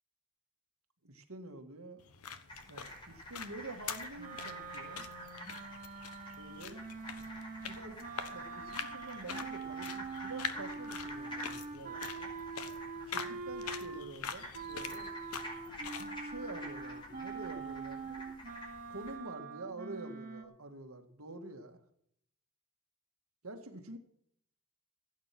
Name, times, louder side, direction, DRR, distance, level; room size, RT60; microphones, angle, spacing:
voice 1, 1.0-2.0 2.7-5.1 6.4-6.8 7.6-8.0 8.3-12.3 13.1-15.1 15.8-18.2 18.9-21.8 23.4-24.0, right 2 dB, 70° right, 6 dB, 1.9 m, -47 dB
sound 1, 2.0-16.1, left 7 dB, 85° left, 1.3 m, -45 dB
sound 2, 2.5-19.2, equal, 25° left, 4.8 m, -49 dB
sound 3, 4.1-14.2 14.5-20.4, right 4 dB, 40° right, 2.9 m, -44 dB
16.5 x 9.1 x 6.0 m, 0.69 s
head